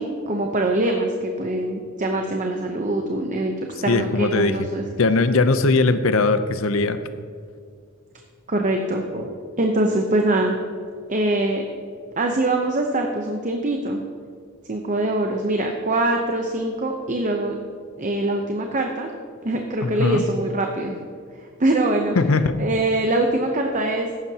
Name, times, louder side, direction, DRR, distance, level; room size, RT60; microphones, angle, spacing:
voice 1, 0.0-3.5 3.8-4.8 8.5-9.3 9.6-10.6 11.1-11.6 12.2-14.0 14.7-17.6 18.0-19.1 19.4-21.0 21.3-22.1 22.6-24.1, right 2 dB, 35° right, 2 dB, 0.8 m, -23 dB
voice 2, 3.9-4.7 5.0-7.0 19.8-20.3 22.2-22.5, left 3 dB, 70° left, 11 dB, 0.7 m, -19 dB
14.5 x 11.0 x 2.9 m, 2.2 s
head